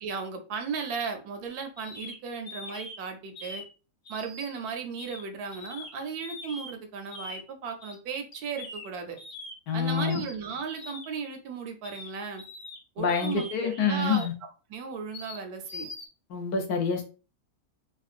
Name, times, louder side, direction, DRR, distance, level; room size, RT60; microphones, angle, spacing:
voice 1, 0.0-3.6 4.1-9.2 9.7-12.4 13.0-14.3 14.7-15.9, right 5 dB, 80° right, 1.2 m, -36 dB
sound 1, 1.8-2.2 2.5-3.0 3.3-3.7 4.0-4.7 5.0-5.2 5.5-5.9 6.2-6.7 7.1-7.4 7.8-8.0 8.3-8.9 9.2-9.5 9.9-10.4 10.7-11.1 11.8-12.1 12.4-12.8 13.1-13.6 14.0-14.3 15.1-15.4 15.7-16.1, left 2 dB, 40° left, 0.8 m, -42 dB
voice 2, 9.7-10.2 13.0-14.3 16.3-17.0, left 5 dB, 80° left, 1.3 m, -27 dB
3.7 x 2.2 x 2.4 m
omnidirectional pair, 1.6 m